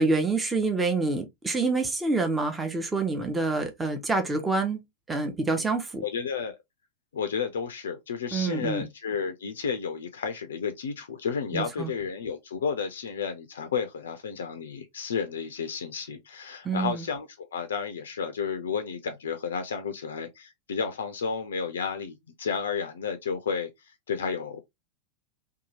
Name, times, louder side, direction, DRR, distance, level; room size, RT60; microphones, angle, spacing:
voice 1, 0.0-4.8 5.1-6.0 8.3-8.8 11.5-11.9 16.6-17.1, right 3 dB, 10° right, 0.5 m, -27 dB
voice 2, 6.0-6.6 7.1-23.7 24.1-24.6, left 6 dB, 65° left, 0.3 m, -32 dB
2.7 x 2.2 x 2.7 m
figure-of-eight pair, 90°, 0 cm